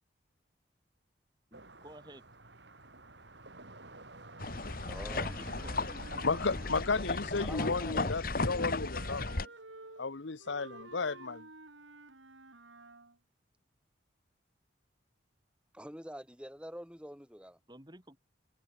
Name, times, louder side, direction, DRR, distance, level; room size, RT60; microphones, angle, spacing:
voice 1, 1.5-2.2 5.2-5.8 17.7-18.2, right 1 dB, 20° right, 6.1 m, -52 dB
sound 1, 1.5-6.8, right 2 dB, 65° right, 4.8 m, -51 dB
sound 2, 4.4-9.5, left 3 dB, 50° left, 1.4 m, -35 dB
voice 2, 4.9-5.3 7.4-8.1 15.7-17.6, equal, 5° right, 3.5 m, -46 dB
Wind instrument woodwind instrument, 4.9-7.8 8.3-13.2, right 2 dB, 85° right, 4.7 m, -52 dB
voice 3, 6.2-9.5 10.0-11.5, left 4 dB, 75° left, 0.9 m, -33 dB
head